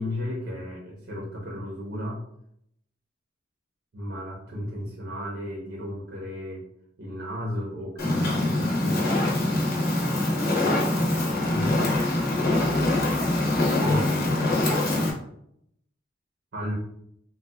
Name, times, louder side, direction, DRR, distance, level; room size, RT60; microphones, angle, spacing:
voice 1, 0.0-2.2 3.9-6.6 7.0-9.1 11.5-11.7 13.8-14.4 16.5-16.7, left 1 dB, 55° right, -4 dB, 0.7 m, -34 dB
Fire, 8.0-15.1, left 2 dB, 50° left, 0.8 m, -24 dB
3.6 x 2.2 x 2.2 m, 0.72 s
head